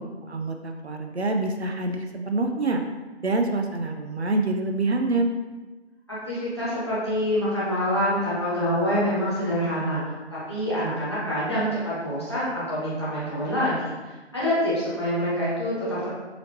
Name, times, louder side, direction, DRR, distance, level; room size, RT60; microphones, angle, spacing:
voice 1, 0.2-2.8 3.2-5.3, right 2 dB, 70° right, 4 dB, 0.5 m, -26 dB
voice 2, 6.1-10.0 10.5-16.1, equal, 25° left, -10 dB, 1.1 m, -26 dB
4.1 x 2.9 x 2.7 m, 1.2 s
figure-of-eight pair, 165°, 34 cm